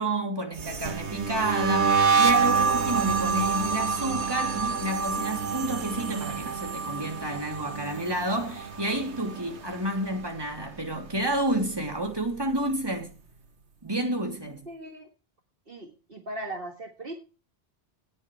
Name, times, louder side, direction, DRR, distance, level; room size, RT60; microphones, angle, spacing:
voice 1, 0.0-13.1 13.8-14.7, right 1 dB, 20° right, 3.2 m, -30 dB
sound 1, 0.6-9.7 10.0-10.4 10.8-12.3, right 5 dB, 80° right, 1.6 m, -27 dB
voice 2, 14.7-15.1 15.7-17.2, right 1 dB, 55° right, 1.9 m, -38 dB
18.5 x 8.5 x 3.3 m
omnidirectional pair, 1.1 m